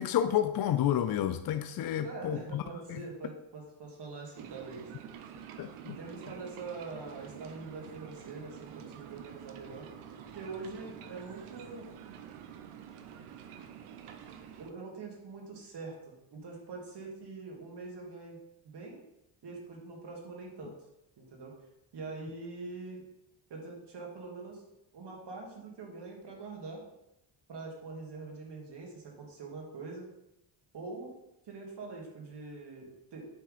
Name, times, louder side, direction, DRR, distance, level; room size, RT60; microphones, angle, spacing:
voice 1, 0.0-2.6 2.9-3.0 5.6-6.0, left 10 dB, 50° left, 0.5 m, -30 dB
voice 2, 2.0-4.9 5.8-9.9 10.3-11.9 14.6-18.4 18.6-19.0 19.4-20.7 21.2-21.5 21.9-23.0 23.5-24.6 24.9-26.8 27.5-30.1 30.7-31.1 31.5-33.3, right 3 dB, 55° right, 2.2 m, -44 dB
sound 1, 4.3-14.7, right 9 dB, 85° right, 0.8 m, -48 dB
7.8 x 3.5 x 4.9 m
cardioid pair, 100°, 49 cm